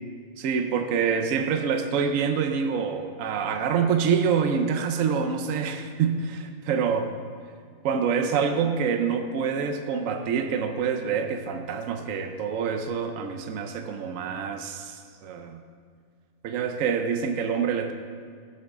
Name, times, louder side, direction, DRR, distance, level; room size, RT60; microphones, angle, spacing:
voice 1, 0.4-7.1 7.8-15.6 16.4-17.9, right 6 dB, 75° right, 7 dB, 1.0 m, -26 dB
14.5 x 8.1 x 3.6 m, 2.1 s
omnidirectional pair, 1.4 m